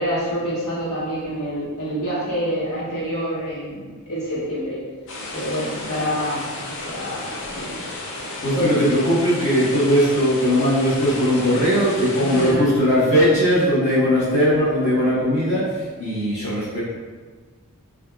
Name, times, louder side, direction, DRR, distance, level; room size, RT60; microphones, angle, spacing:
voice 1, 0.0-4.8 5.3-7.8 8.2-8.7 12.2-12.7, equal, 75° left, -8 dB, 1.4 m, -27 dB
sound 1, 5.1-12.5, left 2 dB, 60° left, 0.6 m, -33 dB
voice 2, 8.4-16.8, equal, 30° left, -10 dB, 1.2 m, -19 dB
6.3 x 2.5 x 2.3 m, 1.4 s
head